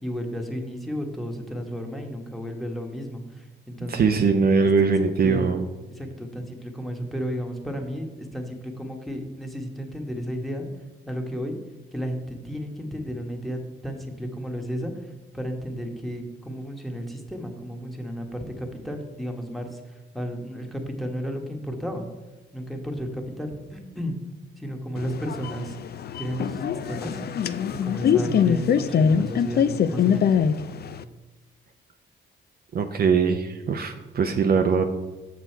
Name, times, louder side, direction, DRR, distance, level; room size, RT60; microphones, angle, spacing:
voice 1, 0.0-4.1 4.8-4.9 5.2-5.6 5.9-10.6 11.1-11.5 11.9-14.9 15.3-22.1 22.5-24.1 24.6-25.8 26.2-27.2 27.8-30.3, equal, ahead, 3 dB, 1.3 m, -33 dB
voice 2, 3.9-5.6 32.7-34.8, right 5 dB, 50° right, 6 dB, 0.6 m, -21 dB
sound 1, 25.0-31.0, left 7 dB, 50° left, 0.4 m, -23 dB
6.8 x 6.3 x 4.5 m, 1.2 s
cardioid pair, 80°, 21 cm